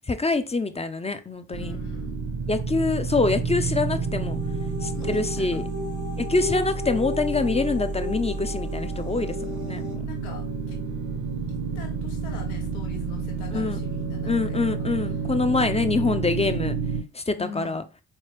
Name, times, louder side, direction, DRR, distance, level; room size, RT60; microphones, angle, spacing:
voice 1, 0.1-1.8 2.5-4.4 4.8-5.6 6.2-10.0 13.5-13.8 14.2-16.7 17.1-17.8, left 3 dB, 15° left, 0.5 m, -25 dB
voice 2, 1.5-2.2 4.9-5.6 10.0-10.8 11.5-14.6 17.3-17.8, left 6 dB, 85° left, 1.0 m, -43 dB
sound 1, 1.5-17.0, right 5 dB, 40° right, 0.8 m, -30 dB
sound 2, 3.9-10.0, left 3 dB, 80° right, 1.1 m, -36 dB
4.0 x 3.3 x 3.0 m
hypercardioid pair, 40°, 46 cm